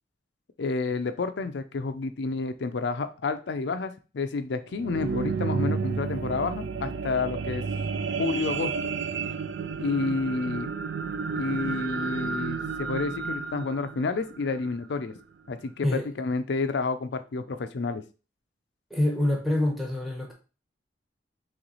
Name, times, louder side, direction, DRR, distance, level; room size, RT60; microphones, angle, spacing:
voice 1, 0.6-7.6 8.2-8.9 9.8-10.7 11.3-15.1 15.5-18.0, left 4 dB, 65° left, 9 dB, 0.4 m, -30 dB
sound 1, 4.6-15.1 15.7-15.8, right 5 dB, 65° right, 0.4 m, -31 dB
voice 2, 18.9-20.3, left 1 dB, ahead, 0 dB, 0.8 m, -26 dB
3.2 x 3.1 x 3.9 m, 0.34 s
head